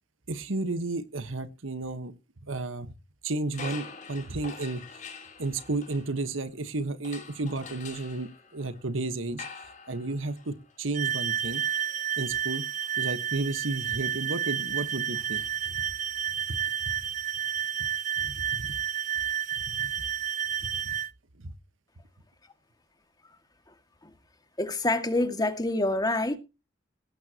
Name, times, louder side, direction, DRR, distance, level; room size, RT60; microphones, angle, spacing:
voice 1, 0.3-2.1 2.4-2.9 3.2-5.0 5.4-9.5 9.9-11.6 12.2-12.6 13.0-15.4 15.7-15.8 16.8-17.1 18.2-18.8 19.7-20.0 20.8-20.9 21.4-21.5, right 2 dB, 85° right, 11 dB, 1.4 m, -33 dB
sound 1, 3.5-6.6 7.0-16.1, left 5 dB, 40° left, 3.6 m, -47 dB
sound 2, 10.9-21.1, right 10 dB, 40° right, 0.8 m, -31 dB
voice 2, 24.6-26.4, left 2 dB, 20° left, 8 dB, 2.1 m, -26 dB
17.5 x 11.5 x 3.0 m, 0.29 s
head